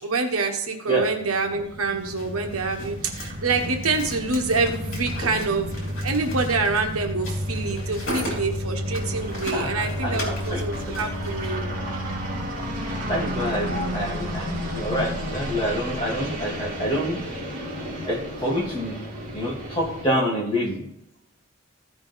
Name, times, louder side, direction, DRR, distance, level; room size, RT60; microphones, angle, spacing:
voice 1, 0.0-5.7 6.0-11.7 13.6-13.9, right 3 dB, 85° right, 4 dB, 1.3 m, -26 dB
sound 1, 1.2-20.1, equal, 40° right, 2.6 m, -32 dB
sound 2, 2.1-11.5, equal, 65° left, 3.5 m, -37 dB
voice 2, 9.5-10.6 13.1-17.2 18.0-19.0 19.3-20.8, equal, 25° left, -4 dB, 2.8 m, -27 dB
15.0 x 5.2 x 4.0 m, 0.81 s
head